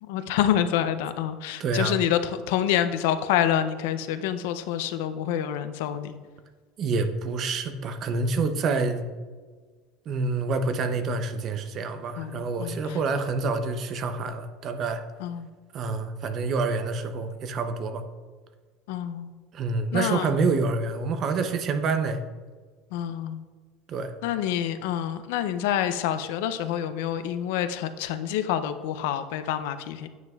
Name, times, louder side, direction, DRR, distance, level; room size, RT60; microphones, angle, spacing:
voice 1, 0.0-6.2 12.2-12.8 15.2-15.5 18.9-19.3 19.9-20.4 22.9-23.4 24.2-30.1, left 10 dB, 80° left, 11 dB, 0.5 m, -27 dB
voice 2, 1.6-2.0 6.8-9.1 10.1-15.0 15.7-18.0 19.5-22.2 23.9-24.1, right 4 dB, 35° right, 8 dB, 0.5 m, -27 dB
9.2 x 7.4 x 2.3 m, 1.4 s
cardioid pair, 175°, 0 cm